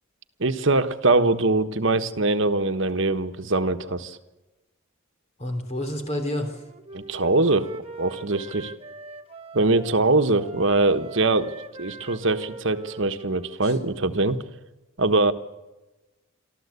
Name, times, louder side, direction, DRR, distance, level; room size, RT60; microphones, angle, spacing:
voice 1, 0.4-4.2 6.9-7.7 8.0-8.7 9.5-14.4 15.0-15.3, right 2 dB, 60° right, 9 dB, 1.3 m, -22 dB
voice 2, 5.4-6.6, left 1 dB, 30° left, 6 dB, 3.2 m, -29 dB
Wind instrument woodwind instrument, 6.4-10.0 10.4-14.0, right 3 dB, 25° right, 1.2 m, -42 dB
24.5 x 14.0 x 8.3 m, 1.1 s
head